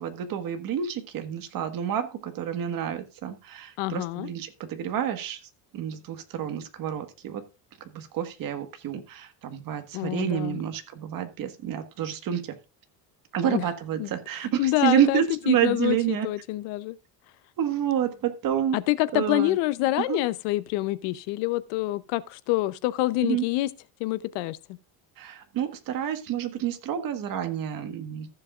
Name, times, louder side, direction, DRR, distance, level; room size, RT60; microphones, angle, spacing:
voice 1, 0.0-5.4 5.7-7.4 7.8-12.6 13.3-16.3 17.6-18.8 19.1-19.6 20.1-20.2 23.2-23.4 25.2-28.3, right 9 dB, 55° right, 1.6 m, -28 dB
voice 2, 3.8-4.3 9.9-10.6 13.4-13.6 14.0-14.1 14.6-17.0 18.7-23.7 24.0-24.6, left 17 dB, 90° left, 0.8 m, -27 dB
14.5 x 7.4 x 2.5 m
cardioid pair, 130°, 42 cm